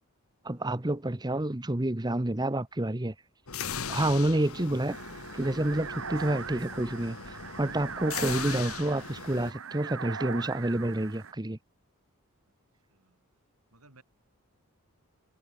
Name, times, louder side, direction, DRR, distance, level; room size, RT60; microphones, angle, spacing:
voice 1, 0.4-3.1 3.9-5.0 5.3-11.6, right 1 dB, 20° right, 1.0 m, -29 dB
sound 1, 3.5-9.5, left 6 dB, 75° left, 1.9 m, -39 dB
sound 2, 4.9-11.3, right 6 dB, 65° right, 0.9 m, -41 dB
voice 2, 13.7-14.0, right 2 dB, 80° right, 5.7 m, -59 dB
head